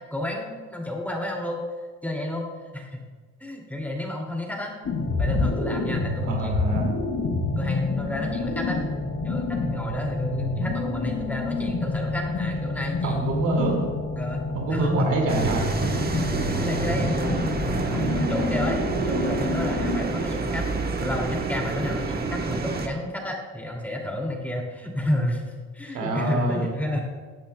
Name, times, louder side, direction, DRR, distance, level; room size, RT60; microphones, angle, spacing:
voice 1, 0.1-1.6 2.0-2.4 2.7-3.0 3.4-4.7 5.2-6.8 7.6-8.8 9.2-13.4 14.2-15.1 16.2-20.6 21.0-27.1, left 1 dB, 5° left, 0 dB, 2.5 m, -30 dB
sound 1, 4.8-20.0, left 3 dB, 55° left, 2.5 m, -28 dB
voice 2, 6.3-6.9 13.0-13.9 14.5-15.9 16.4-16.6 16.9-17.0 25.9-26.7, right 2 dB, 85° right, 0 dB, 2.4 m, -26 dB
sound 2, 15.3-22.9, right 3 dB, 30° right, 1.1 m, -28 dB
16.0 x 10.5 x 2.3 m, 1.4 s
cardioid pair, 90°, 30 cm